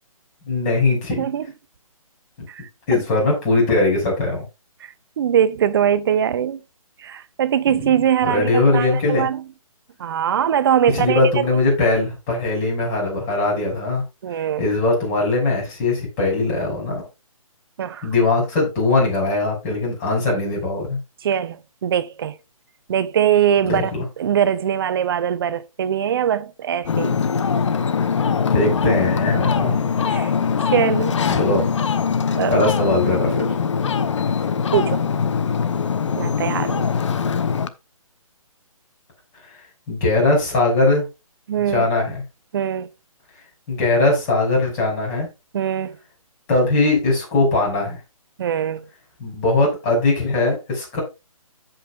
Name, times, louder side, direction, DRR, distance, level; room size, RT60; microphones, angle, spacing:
voice 1, 0.5-1.3 2.9-4.4 7.7-7.9 8.2-9.3 10.9-14.0 14.6-17.1 18.0-21.0 23.6-24.0 28.5-29.8 31.3-31.6 32.5-33.6 39.4-39.6 39.9-41.0 41.7-42.2 43.7-45.3 46.5-48.0 49.2-51.0, left 2 dB, 25° left, 5.8 m, -20 dB
voice 2, 1.1-1.5 2.5-3.0 4.8-6.6 7.0-9.4 10.0-11.2 14.2-14.6 17.8-18.1 21.2-22.4 22.9-23.9 24.2-27.2 28.8-28.9 30.1-30.3 30.7-31.2 32.4-32.6 34.7-35.0 36.2-36.9 41.5-41.9 42.5-42.9 45.5-46.0 48.4-48.9, right 9 dB, 40° right, 0.7 m, -22 dB
Ocean, 26.8-37.7, left 6 dB, 55° left, 0.8 m, -22 dB
15.5 x 5.6 x 2.4 m
figure-of-eight pair, 145°, 19 cm